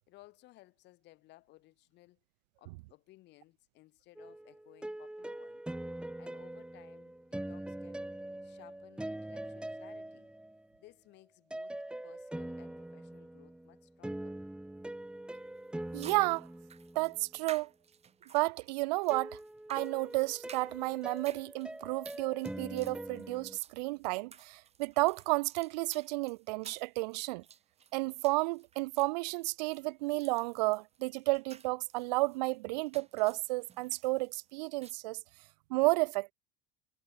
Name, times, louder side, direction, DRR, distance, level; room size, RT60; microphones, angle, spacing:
voice 1, 0.0-2.2 2.6-5.6 6.2-8.0 8.4-10.3 10.8-11.7 12.0-14.4, left 18 dB, 55° left, 6.2 m, -60 dB
sound 1, 4.2-10.8 11.5-17.4 19.1-23.6, right 1 dB, 5° right, 3.6 m, -43 dB
sound 2, 15.3-15.4 16.0-34.9, right 8 dB, 30° right, 7.8 m, -55 dB
voice 2, 15.9-16.5 17.0-17.7 18.3-19.3 19.7-27.4 27.9-35.2 35.7-36.3, right 23 dB, 90° right, 0.5 m, -32 dB
supercardioid pair, 125°, 21 cm